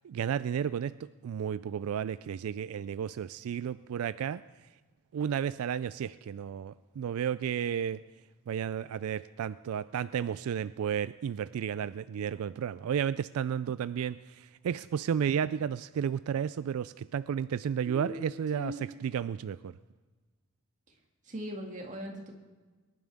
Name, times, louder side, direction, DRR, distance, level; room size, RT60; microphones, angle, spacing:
voice 1, 0.0-4.4 5.1-8.0 8.5-18.7 19.0-19.7, right 8 dB, 80° right, 15 dB, 0.3 m, -32 dB
voice 2, 17.9-18.3 18.5-18.8 21.2-22.3, equal, 35° right, 1 dB, 2.1 m, -39 dB
23.5 x 11.0 x 3.5 m, 1.3 s
head